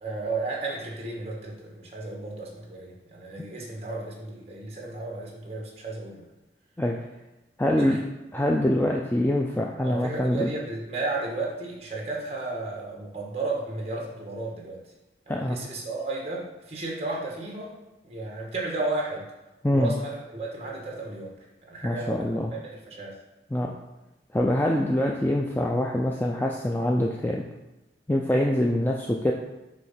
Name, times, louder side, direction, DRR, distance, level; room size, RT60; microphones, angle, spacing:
voice 1, 0.0-6.3 7.8-8.0 9.8-14.8 15.3-19.3 19.7-21.3 21.7-23.1, right 2 dB, 35° right, -1 dB, 1.5 m, -33 dB
voice 2, 7.6-8.0 8.3-10.5 15.3-15.6 19.6-19.9 21.8-22.5 23.5-23.7 24.3-27.4 28.1-29.3, left 1 dB, 10° left, 0 dB, 0.4 m, -24 dB
7.6 x 3.2 x 5.6 m, 1.0 s
head